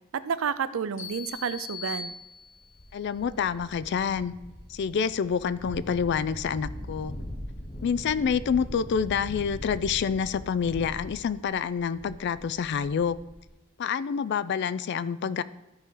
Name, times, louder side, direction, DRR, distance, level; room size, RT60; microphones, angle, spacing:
voice 1, 0.1-2.1, right 6 dB, 75° right, 14 dB, 0.5 m, -30 dB
sound 1, 1.0-2.9, left 5 dB, 80° left, 2.1 m, -40 dB
sound 2, 2.5-13.5, equal, 30° left, 1.0 m, -41 dB
voice 2, 2.9-4.3 4.7-7.1 7.8-13.2 13.8-15.4, left 6 dB, 55° left, 16 dB, 0.3 m, -27 dB
13.0 x 4.8 x 3.8 m, 0.99 s
head